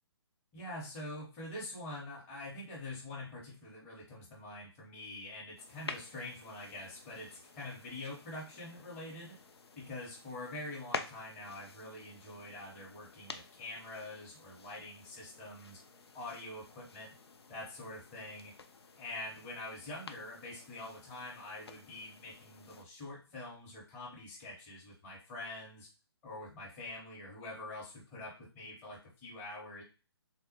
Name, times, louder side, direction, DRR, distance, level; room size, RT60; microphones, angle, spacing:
voice 1, 0.5-9.4 9.8-15.8 16.1-17.1 17.5-18.5 19.0-25.9 26.2-29.8, left 2 dB, 15° left, -6 dB, 0.7 m, -45 dB
sound 1, 5.6-22.8, left 4 dB, 70° left, 0.4 m, -50 dB
3.4 x 2.0 x 2.9 m, 0.33 s
figure-of-eight pair, 135°, 14 cm